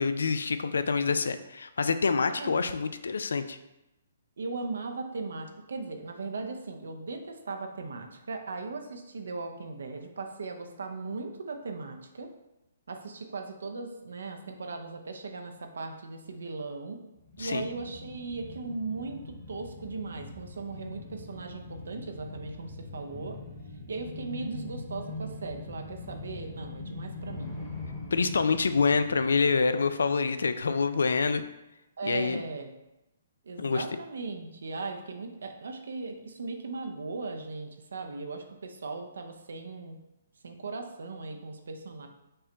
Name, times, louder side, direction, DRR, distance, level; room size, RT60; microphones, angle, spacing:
voice 1, 0.0-3.6 17.4-17.7 28.1-31.4 32.0-32.4 33.6-33.8, left 4 dB, 85° left, 10 dB, 0.3 m, -26 dB
voice 2, 4.4-12.3 12.9-17.0 17.4-23.4 23.9-27.5 32.0-32.7 33.4-40.0 40.4-42.1, right 3 dB, 80° right, 5 dB, 0.6 m, -38 dB
sound 1, 17.2-30.4 30.7-30.8, left 3 dB, 5° right, 1.0 m, -42 dB
5.5 x 2.2 x 3.9 m, 0.94 s
hypercardioid pair, 145°, 0 cm